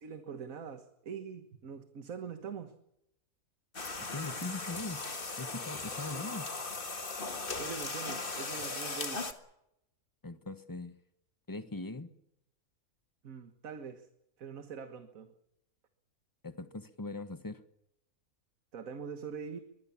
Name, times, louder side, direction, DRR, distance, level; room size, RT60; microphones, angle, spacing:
voice 1, 0.0-2.7 7.6-9.3 13.2-14.1 14.4-15.3 18.7-19.6, right 6 dB, 65° right, 8 dB, 1.8 m, -43 dB
sound 1, 3.7-9.3, left 3 dB, 35° left, 1.9 m, -38 dB
voice 2, 4.0-5.1 5.4-6.5 10.2-11.0 11.5-12.1 16.4-17.6, left 2 dB, 15° left, 11 dB, 1.2 m, -41 dB
23.0 x 21.5 x 7.2 m, 0.80 s
omnidirectional pair, 1.6 m